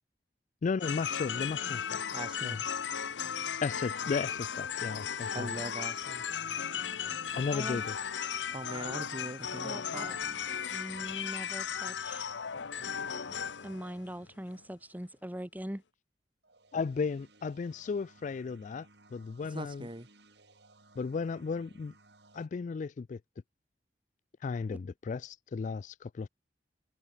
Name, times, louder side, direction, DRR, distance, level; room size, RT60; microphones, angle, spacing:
voice 1, 0.6-2.0 2.4-2.6 3.6-5.5 7.4-8.0 16.7-19.9 21.0-21.9 22.3-23.2 24.4-26.3, left 5 dB, 45° left, 0.3 m, -35 dB
sound 1, 0.8-14.6, left 7 dB, 90° left, 0.9 m, -36 dB
voice 2, 2.1-2.6 5.3-6.3 8.5-10.2 10.5-10.9 19.5-20.1, right 1 dB, 30° right, 3.1 m, -42 dB
sound 2, 5.4-15.0 16.4-22.5, right 2 dB, 70° right, 7.0 m, -61 dB
voice 3, 7.5-7.8 9.6-10.1 10.7-12.3 13.6-15.8 24.7-24.8, equal, 10° right, 1.8 m, -41 dB
head